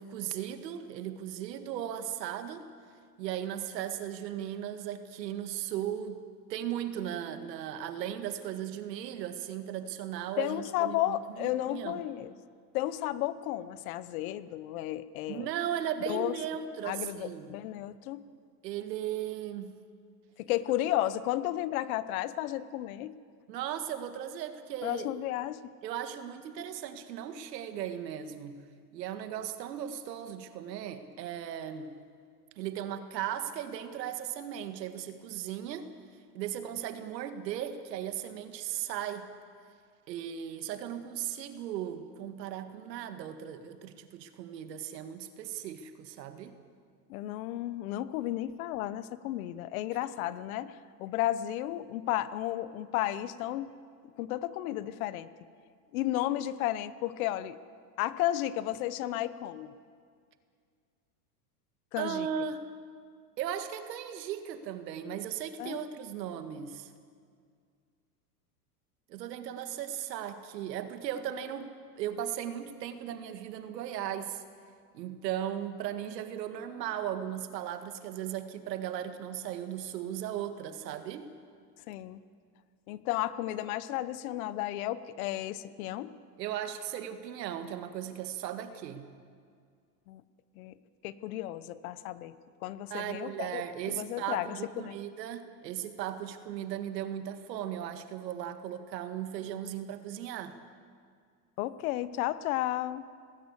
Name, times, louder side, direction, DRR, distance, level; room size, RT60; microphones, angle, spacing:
voice 1, 0.0-2.7 3.2-6.2 6.5-12.0 15.3-17.6 18.6-19.7 23.5-25.1 25.8-28.6 28.9-31.9 32.6-35.9 36.3-39.3 40.1-46.6 62.0-62.6 63.4-66.9 69.1-74.4 74.9-81.3 86.4-89.1 92.9-100.5, right 10 dB, 80° right, 9 dB, 2.0 m, -37 dB
voice 2, 10.4-12.3 12.7-15.5 16.1-16.4 16.8-18.3 20.4-23.2 24.8-25.7 47.1-50.7 51.0-53.7 54.2-55.3 55.9-57.6 58.0-59.7 61.9-62.3 65.6-65.8 81.9-82.2 82.9-86.1 90.1-90.2 90.6-90.7 91.0-92.3 92.6-95.0 101.6-103.0, left 14 dB, 60° left, 15 dB, 1.0 m, -33 dB
19.0 x 18.5 x 8.2 m, 2.1 s
supercardioid pair, 145°, 49 cm